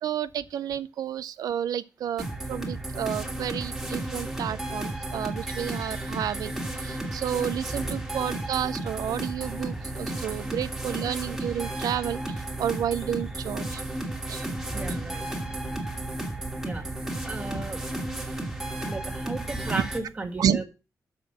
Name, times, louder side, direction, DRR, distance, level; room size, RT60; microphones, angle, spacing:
voice 1, 0.0-12.2 12.6-13.8 14.3-14.5 14.9-15.0 19.7-19.8 20.4-20.6, right 9 dB, 90° right, 0.4 m, -30 dB
sound 1, 2.2-20.0, right 1 dB, 5° right, 1.8 m, -33 dB
voice 2, 14.7-15.6 16.6-16.9 17.2-17.8 18.9-20.6, right 3 dB, 25° right, 1.8 m, -35 dB
7.1 x 5.9 x 7.2 m
wide cardioid pair, 170°, 6 cm